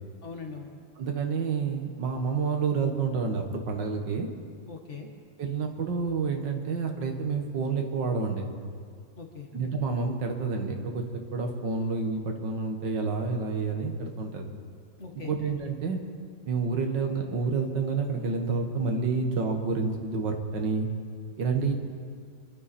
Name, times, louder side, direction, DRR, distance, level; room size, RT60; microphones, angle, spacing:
voice 1, 0.2-0.7 4.7-5.1 9.2-9.5 15.0-15.4 21.6-21.7, left 5 dB, 40° left, 2 dB, 1.8 m, -41 dB
voice 2, 1.0-4.3 5.4-8.5 9.5-11.0 11.3-14.5 15.2-16.0 16.5-20.9 21.4-21.7, right 4 dB, 75° right, 3 dB, 2.1 m, -29 dB
27.0 x 12.0 x 4.3 m, 2.1 s
omnidirectional pair, 2.0 m